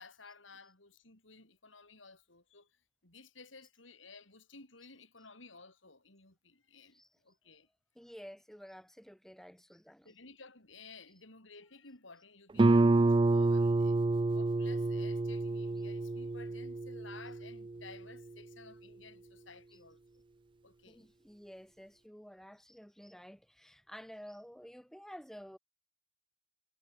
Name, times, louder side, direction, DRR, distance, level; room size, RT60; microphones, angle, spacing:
voice 1, 0.0-7.7 8.2-8.3 10.0-14.0 14.3-20.0 20.6-21.1, left 4 dB, 90° left, 5.7 m, -55 dB
voice 2, 7.9-10.1 20.9-25.6, equal, ahead, 1.5 m, -51 dB
Guitar, 12.6-18.0, right 2 dB, 25° right, 0.4 m, -28 dB
head